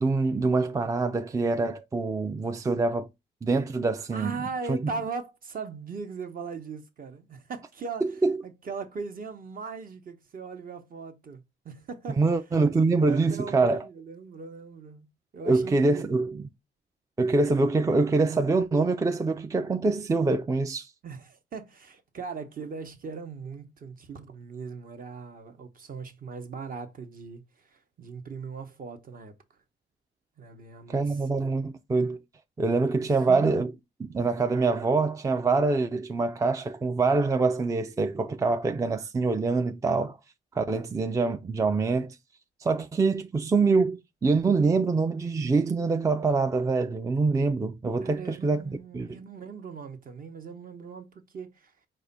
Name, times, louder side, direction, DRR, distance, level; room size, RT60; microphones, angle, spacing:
voice 1, 0.0-3.1 3.4-4.4 4.7-4.8 8.0-8.4 12.2-13.9 15.5-16.5 17.2-20.9 30.9-32.2 32.6-33.7 34.0-40.2 40.5-42.2 42.6-48.6 48.9-49.2, right 3 dB, 15° right, 0.4 m, -25 dB
voice 2, 4.1-8.0 8.4-12.2 13.0-15.1 15.3-16.2 21.0-29.3 30.4-31.2 33.0-33.6 48.0-51.7, right 5 dB, 45° right, 0.9 m, -39 dB
4.7 x 2.2 x 4.0 m
cardioid pair, 90°, 20 cm